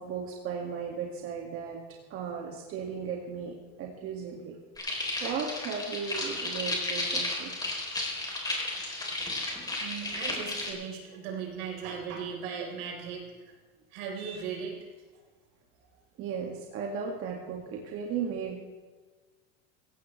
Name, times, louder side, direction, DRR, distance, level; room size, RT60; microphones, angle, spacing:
voice 1, 0.0-1.8 2.1-4.6 5.2-7.6 16.2-18.6, right 6 dB, 50° right, 0 dB, 2.1 m, -36 dB
sound 1, 4.8-10.7, left 2 dB, 15° left, 3.6 m, -33 dB
voice 2, 9.8-13.5 13.9-14.8, right 6 dB, 80° right, 0 dB, 4.3 m, -38 dB
16.5 x 16.0 x 3.3 m, 1.3 s
supercardioid pair, 125°, 29 cm